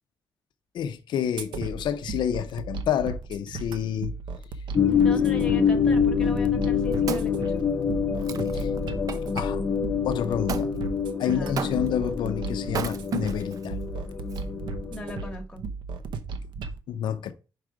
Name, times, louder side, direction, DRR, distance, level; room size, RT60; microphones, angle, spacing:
voice 1, 0.7-4.1 8.5-8.7 9.3-9.6 10.0-10.7 11.2-13.8 16.9-17.3, left 9 dB, 80° left, 0.6 m, -29 dB
sound 1, 1.4-16.8, right 4 dB, 85° right, 0.7 m, -36 dB
sound 2, 4.7-15.3, left 6 dB, 30° left, 0.6 m, -26 dB
voice 2, 4.9-7.7 11.2-11.6 14.9-15.6, left 2 dB, 10° left, 1.0 m, -38 dB
Wood, 6.6-9.5 10.5-10.7 11.6-12.1 12.7-13.7 14.3-14.4, right 7 dB, 50° right, 0.5 m, -35 dB
5.0 x 4.8 x 4.6 m
wide cardioid pair, 150°, 8 cm